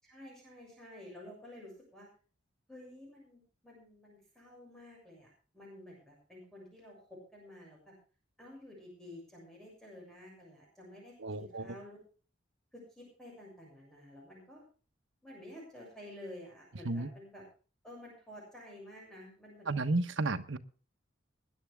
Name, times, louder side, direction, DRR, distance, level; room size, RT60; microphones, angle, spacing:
voice 1, 0.0-2.1 2.7-8.0 8.4-12.0 12.7-14.6 15.2-17.4 17.8-19.8, left 1 dB, 5° left, 7.0 m, -51 dB
voice 2, 11.2-11.7 16.8-17.1 19.7-20.6, right 2 dB, 80° right, 1.2 m, -32 dB
20.5 x 10.5 x 3.6 m
head